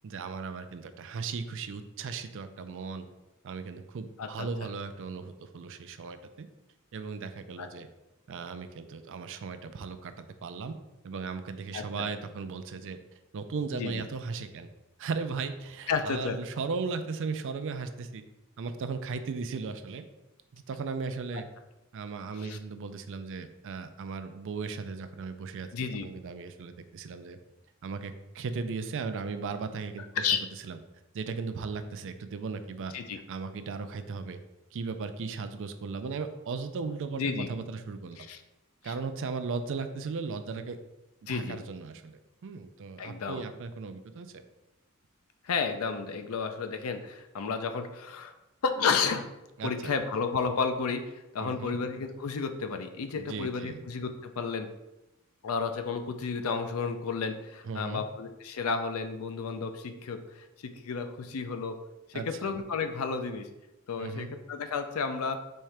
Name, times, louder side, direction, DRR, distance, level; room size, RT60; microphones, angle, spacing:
voice 1, 0.0-3.1 3.4-6.5 6.9-7.9 8.3-10.8 11.0-13.0 13.3-14.7 15.0-18.2 18.6-20.0 20.5-21.5 21.9-25.7 26.0-27.4 27.8-30.3 30.6-30.8 31.1-32.9 33.3-34.4 34.7-38.3 38.8-40.8 41.2-44.3 49.6-50.0 51.4-51.8 53.2-53.8 57.6-58.0 62.1-62.5 64.0-64.3, right 4 dB, 60° right, 9 dB, 0.4 m, -37 dB
voice 2, 4.2-4.7 7.6-7.7 11.7-12.1 13.7-14.0 15.9-16.4 22.4-22.6 25.7-26.1 30.2-30.4 32.9-33.2 37.2-37.5 38.2-38.4 38.8-38.9 41.3-41.6 43.0-43.4 45.4-48.3 48.6-49.3 49.6-54.7 55.4-61.8 62.3-63.5 63.9-65.4, left 5 dB, 70° left, 8 dB, 0.5 m, -32 dB
4.4 x 3.6 x 3.3 m, 0.97 s
head